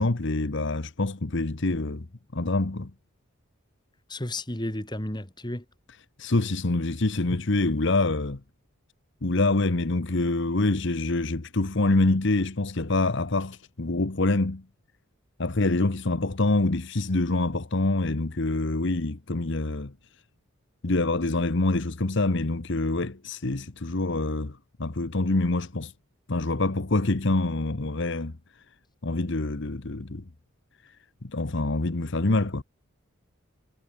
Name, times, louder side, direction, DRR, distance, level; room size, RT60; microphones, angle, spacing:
voice 1, 0.0-2.1 2.3-2.9 6.2-8.4 9.2-14.6 15.4-19.9 20.8-25.9 26.3-28.3 29.0-30.2 31.2-32.6, left 2 dB, 55° left, 1.1 m, -26 dB
voice 2, 4.1-5.6, left 1 dB, 20° left, 2.7 m, -32 dB
head